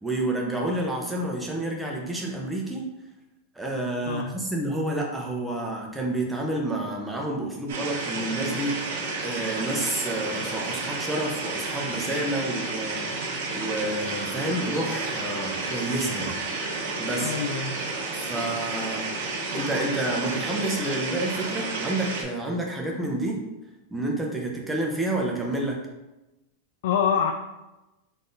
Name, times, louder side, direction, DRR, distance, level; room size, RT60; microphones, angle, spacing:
voice 1, 0.0-2.9 3.5-8.9 9.2-16.4 17.0-17.3 18.1-19.1 19.5-23.4 23.9-25.8, right 1 dB, 5° right, -1 dB, 0.7 m, -29 dB
sound 1, 7.7-22.2, right 3 dB, 65° right, 1.1 m, -31 dB
voice 2, 17.2-17.7 26.8-27.3, left 7 dB, 60° left, 5 dB, 0.4 m, -25 dB
3.8 x 3.4 x 3.9 m, 1.0 s
supercardioid pair, 170°, 0 cm